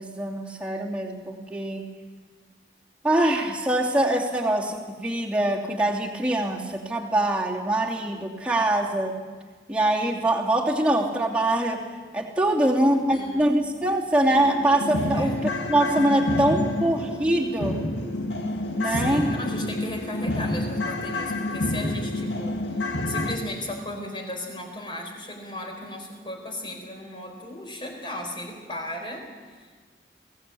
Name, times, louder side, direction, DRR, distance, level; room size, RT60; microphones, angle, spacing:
voice 1, 0.0-1.8 3.0-9.2 9.7-11.9 12.1-17.9 18.8-19.3, right 1 dB, 5° right, -3 dB, 2.8 m, -24 dB
voice 2, 12.6-13.6 15.1-15.4 18.8-29.8, left 1 dB, 30° left, 3 dB, 4.3 m, -36 dB
sound 1, 13.4-13.5 13.9-14.0 14.3-23.4, left 1 dB, 90° left, 2.0 m, -28 dB
23.0 x 17.5 x 8.5 m, 1.5 s
head